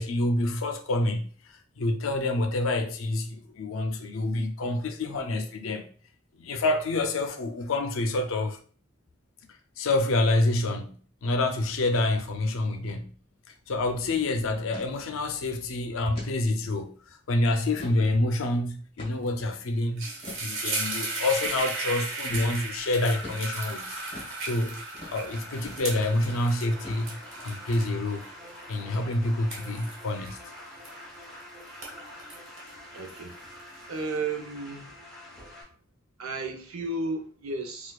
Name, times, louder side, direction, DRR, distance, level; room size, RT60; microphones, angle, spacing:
voice 1, 0.0-5.9 6.4-8.6 9.8-11.0 11.2-13.1 13.5-20.1 20.4-24.0 24.4-24.8 25.1-28.2 28.7-30.4, left 2 dB, 75° left, 0.5 m, -27 dB
sound 1, 12.8-13.0 13.3-13.4 13.7-14.0 14.7-14.9 15.4-15.5 16.1-16.4 16.9-17.0 17.5-18.1 19.0-19.3 20.2-20.4 21.4-21.6 22.3-22.5 23.2-23.5 24.1-24.4 24.9-25.2 25.6-25.9 26.2-26.4 26.8-27.3, left 2 dB, 25° left, 1.3 m, -43 dB
sound 2, 19.3-19.5 19.8-31.3 31.7-33.6, right 2 dB, 70° right, 1.1 m, -36 dB
sound 3, 25.2-35.6, left 1 dB, ahead, 0.8 m, -46 dB
voice 2, 32.9-33.4 33.9-35.0 36.2-37.9, right 3 dB, 90° right, 0.7 m, -33 dB
4.3 x 2.3 x 2.3 m
head